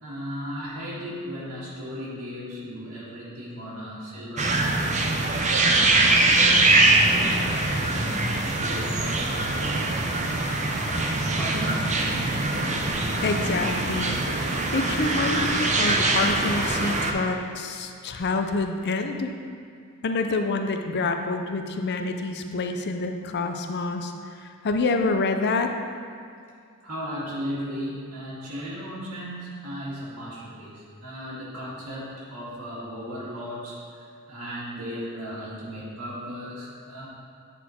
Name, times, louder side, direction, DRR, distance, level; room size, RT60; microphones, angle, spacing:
voice 1, 0.0-5.1 5.6-10.0 10.7-12.2 26.8-37.1, equal, 80° right, -8 dB, 1.9 m, -36 dB
sound 1, 4.4-17.1, right 2 dB, 35° right, 0.6 m, -23 dB
voice 2, 13.2-14.2 14.7-19.3 20.0-24.1 24.6-25.7, left 3 dB, 50° left, 5 dB, 0.5 m, -27 dB
8.9 x 4.2 x 4.4 m, 2.4 s
head